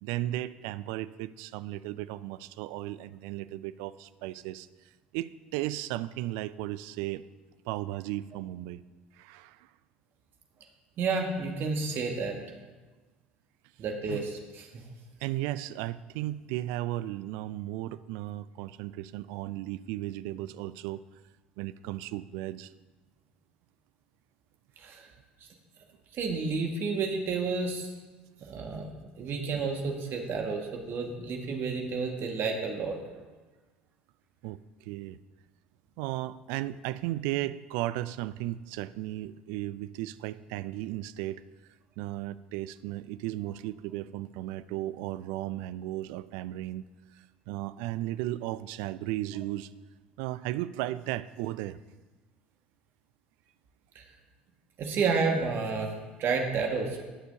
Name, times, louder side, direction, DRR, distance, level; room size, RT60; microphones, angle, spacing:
voice 1, 0.0-4.7 5.1-7.2 7.6-8.8 9.1-9.7 14.1-14.3 15.2-21.0 21.6-22.7 34.4-35.2 36.0-41.4 42.0-49.7 50.2-51.8, right 15 dB, 65° right, 16 dB, 0.4 m, -35 dB
voice 2, 11.0-12.3 13.8-14.8 24.8-25.1 26.1-27.9 28.5-28.9 29.2-33.0 54.0-54.1 54.8-55.9 56.2-57.0, right 4 dB, 45° right, 2 dB, 1.8 m, -30 dB
20.0 x 6.7 x 2.8 m, 1.3 s
figure-of-eight pair, 65°, 5 cm